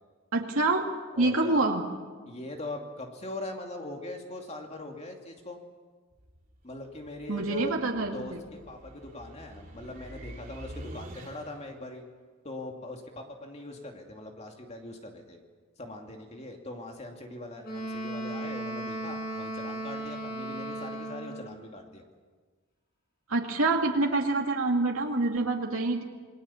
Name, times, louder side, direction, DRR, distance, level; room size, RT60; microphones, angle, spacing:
voice 1, 0.3-0.8 1.2-1.8 7.3-8.4 23.3-26.0, right 2 dB, 75° right, 1 dB, 2.3 m, -26 dB
voice 2, 1.2-1.6 2.3-5.6 6.6-7.7 8.1-12.0 12.4-15.4 15.8-22.0, left 1 dB, 30° left, 2 dB, 2.6 m, -41 dB
sound 1, 6.1-11.8, equal, 40° right, 3.5 m, -47 dB
Wind instrument woodwind instrument, 17.6-21.6, right 1 dB, 45° left, 6.8 m, -36 dB
28.0 x 20.0 x 7.2 m, 1.4 s
head